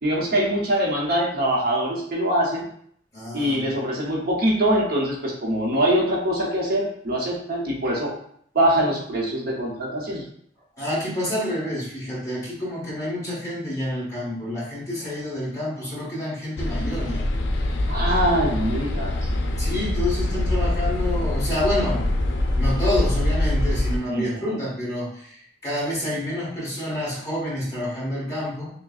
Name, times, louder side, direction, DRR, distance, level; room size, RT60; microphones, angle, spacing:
voice 1, 0.0-2.7 3.3-8.1 8.5-10.2 17.9-19.3 24.1-24.6, right 1 dB, 55° right, -3 dB, 0.9 m, -23 dB
voice 2, 3.1-3.7 10.8-17.2 19.6-28.7, left 1 dB, 20° left, -7 dB, 1.5 m, -28 dB
sound 1, 16.6-24.0, left 1 dB, 75° left, 0.5 m, -24 dB
6.0 x 2.2 x 2.4 m, 0.64 s
head